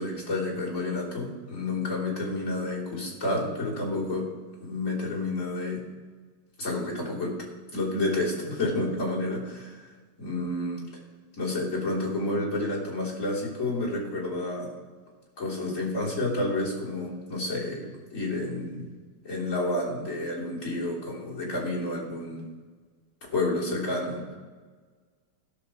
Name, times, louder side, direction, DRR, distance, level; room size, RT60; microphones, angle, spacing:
voice 1, 0.0-4.3 4.6-5.8 6.6-7.4 7.7-9.8 10.2-10.9 11.4-14.7 15.4-18.9 19.2-22.4 23.2-24.3, left 2 dB, 40° left, -6 dB, 3.7 m, -30 dB
16.5 x 6.1 x 4.6 m, 1.4 s
omnidirectional pair, 2.0 m